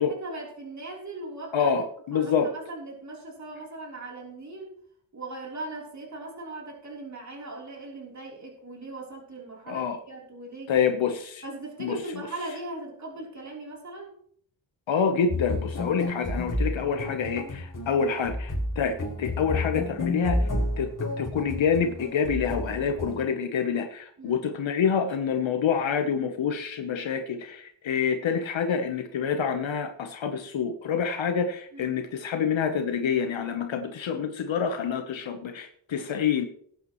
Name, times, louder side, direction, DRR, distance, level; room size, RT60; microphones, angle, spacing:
voice 1, 0.0-1.7 2.1-4.7 5.1-10.9 11.4-14.1 24.2-24.4 31.7-32.0, right 2 dB, 35° right, -2 dB, 3.7 m, -39 dB
voice 2, 1.5-2.5 9.7-10.0 10.7-11.4 11.8-12.3 14.9-20.5 20.8-20.9 21.2-36.5, left 6 dB, 75° left, 6 dB, 1.1 m, -27 dB
sound 1, 15.3-23.2, left 2 dB, 40° left, 4.7 m, -31 dB
19.0 x 9.1 x 3.1 m, 0.63 s
wide cardioid pair, 140°, 47 cm